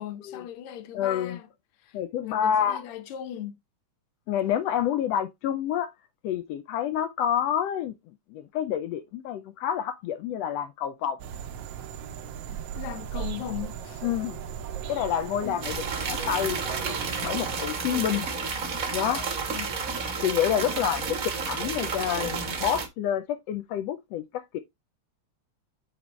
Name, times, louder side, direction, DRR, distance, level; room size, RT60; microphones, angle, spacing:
voice 1, 0.0-1.5 1.8-3.5 12.5-14.0 15.4-15.7 17.9-18.2 19.5-19.7, left 11 dB, 70° left, 1.4 m, -38 dB
voice 2, 0.9-1.4 1.9-2.8 4.3-5.9 6.2-8.0 8.3-11.2 14.0-14.4 14.9-15.8 16.1-16.6 16.9-18.3 18.9-19.2 20.2-21.2 21.5-24.6, left 9 dB, 90° left, 1.4 m, -28 dB
sound 1, 11.2-17.6, right 9 dB, 75° right, 1.4 m, -37 dB
sound 2, 15.6-22.9, right 5 dB, 55° right, 0.9 m, -31 dB
8.8 x 4.2 x 3.1 m
omnidirectional pair, 3.6 m